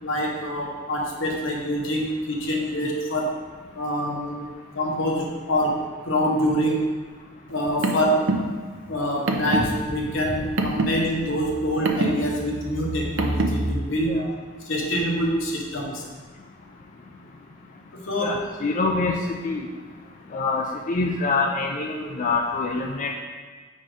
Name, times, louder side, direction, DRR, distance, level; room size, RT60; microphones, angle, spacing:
voice 1, 0.0-3.4 3.7-4.4 4.7-6.9 7.5-8.3 8.9-14.2 14.6-16.0 17.9-18.4, equal, 80° left, -1 dB, 1.1 m, -25 dB
Car, 7.5-13.7, right 2 dB, 80° right, 0.6 m, -27 dB
voice 2, 18.2-19.2 19.4-19.6 20.3-23.2, left 3 dB, 40° left, 1 dB, 0.4 m, -25 dB
4.9 x 4.2 x 4.9 m, 1.5 s
head